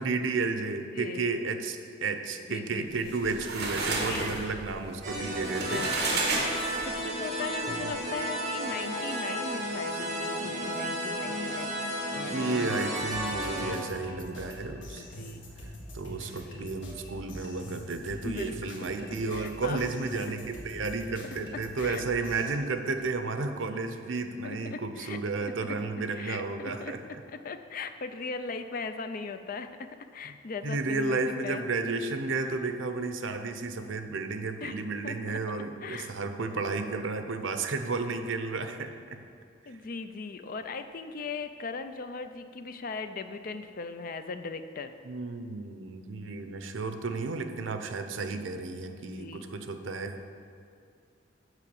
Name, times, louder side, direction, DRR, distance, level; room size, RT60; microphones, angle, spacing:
voice 1, 0.0-5.9 7.7-7.9 12.3-15.0 15.9-27.0 30.6-38.9 45.0-50.2, right 3 dB, 90° right, 8 dB, 0.7 m, -32 dB
voice 2, 2.5-3.1 4.1-4.4 5.7-6.3 6.8-11.8 14.9-15.5 16.5-16.7 18.2-18.8 19.1-19.9 21.5-22.1 24.4-25.2 26.1-31.7 34.6-35.4 35.8-36.1 39.7-44.9 48.3-48.4 49.0-49.5, left 4 dB, 50° left, 9 dB, 0.5 m, -39 dB
sound 1, 3.0-7.2, right 3 dB, 55° right, 1.5 m, -32 dB
sound 2, 5.0-13.7, equal, 40° right, 2.5 m, -33 dB
sound 3, 12.6-22.6, equal, 75° left, 1.7 m, -44 dB
8.2 x 5.7 x 6.9 m, 2.3 s
head